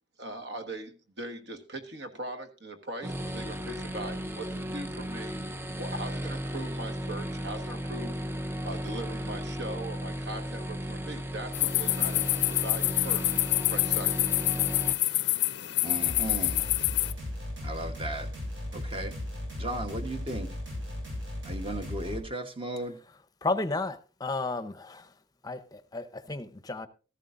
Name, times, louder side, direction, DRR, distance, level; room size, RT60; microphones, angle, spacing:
voice 1, 0.2-5.4 5.7-8.2 8.6-13.3 13.7-14.3, right 1 dB, 60° right, 1.5 m, -40 dB
sound 1, 3.0-14.9, equal, 10° right, 0.5 m, -35 dB
sound 2, 11.5-17.1, left 17 dB, 60° left, 0.5 m, -27 dB
voice 2, 15.8-16.7 17.6-18.4 18.7-19.2 19.6-20.6 21.4-23.0, right 1 dB, 30° right, 1.1 m, -36 dB
sound 3, 16.0-22.2, left 1 dB, 80° right, 7.9 m, -36 dB
voice 3, 23.4-25.1 25.4-26.9, left 3 dB, 20° left, 0.7 m, -33 dB
14.0 x 14.0 x 2.5 m
head